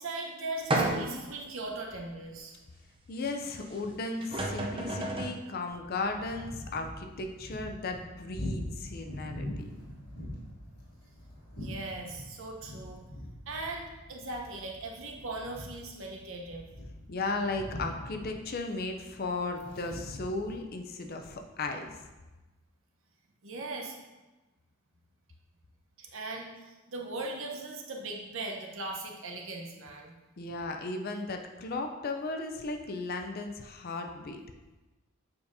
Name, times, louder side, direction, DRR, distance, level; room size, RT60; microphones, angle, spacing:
voice 1, 0.0-2.6 11.6-13.0 13.5-16.7 23.4-23.9 26.0-30.1, right 2 dB, 60° right, 1 dB, 0.9 m, -39 dB
sound 1, 0.7-1.3 1.9-2.0 3.8-3.9 4.2-5.4, right 2 dB, 25° right, 0.5 m, -31 dB
voice 2, 3.1-9.8 17.1-22.0 30.4-34.4, left 3 dB, 45° left, 4 dB, 0.5 m, -35 dB
sound 2, 5.7-20.6, equal, 85° left, 1.5 m, -43 dB
7.0 x 5.0 x 2.7 m, 1.1 s
head